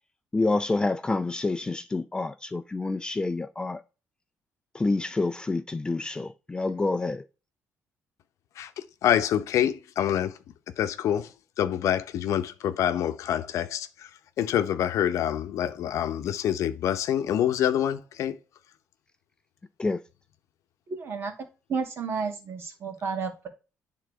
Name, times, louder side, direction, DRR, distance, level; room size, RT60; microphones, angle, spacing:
voice 1, 0.3-3.8 4.7-7.2 19.8-20.0, left 3 dB, 15° left, 0.4 m, -28 dB
voice 2, 9.0-10.3 10.8-11.3 11.6-14.1 14.4-18.4, left 10 dB, 75° left, 0.7 m, -26 dB
voice 3, 20.9-21.3 21.7-23.5, right 5 dB, 50° right, 1.9 m, -31 dB
9.1 x 3.7 x 4.7 m
cardioid pair, 125°, 5 cm